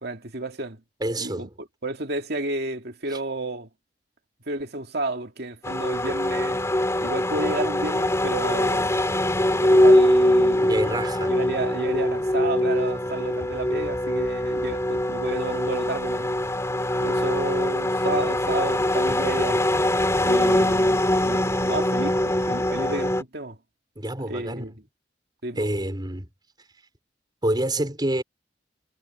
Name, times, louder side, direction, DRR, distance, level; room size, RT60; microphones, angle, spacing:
voice 1, 0.0-0.8 1.2-3.7 4.5-6.6 7.0-8.9 9.6-11.0 11.3-16.3 17.0-19.7 20.2-23.6 24.2-24.7 25.4-25.7, right 2 dB, 65° right, 2.4 m, -31 dB
voice 2, 1.0-1.5 3.1-3.2 10.6-11.3 24.0-24.7 25.6-26.3 27.4-28.2, right 1 dB, 25° right, 4.6 m, -27 dB
sound 1, 5.6-23.2, left 1 dB, 15° left, 3.5 m, -22 dB
head